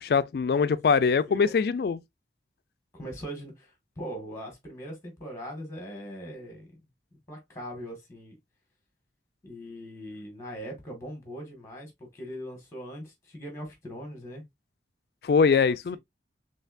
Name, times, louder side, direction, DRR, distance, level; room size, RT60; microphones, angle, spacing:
voice 1, 0.0-2.0 15.2-16.0, left 5 dB, 55° left, 0.3 m, -23 dB
voice 2, 1.2-1.6 2.9-6.8 7.3-8.3 9.4-14.4 15.5-16.0, equal, 15° left, 1.5 m, -41 dB
4.3 x 3.2 x 2.5 m
head